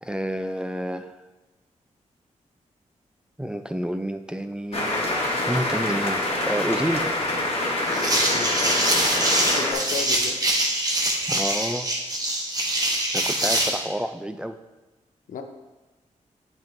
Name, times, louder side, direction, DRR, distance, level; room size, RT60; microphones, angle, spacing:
voice 1, 0.0-1.1 3.4-7.1 11.3-11.9 13.1-14.6, equal, 5° right, 8 dB, 0.3 m, -29 dB
sound 1, 4.7-9.7, left 2 dB, 45° left, 1.4 m, -25 dB
sound 2, 7.9-13.8, right 1 dB, 30° right, 1.1 m, -24 dB
voice 2, 8.1-8.6 9.4-10.4 15.3-15.4, left 5 dB, 80° left, 5 dB, 0.6 m, -34 dB
7.7 x 5.3 x 2.6 m, 1.1 s
cardioid pair, 70°, 13 cm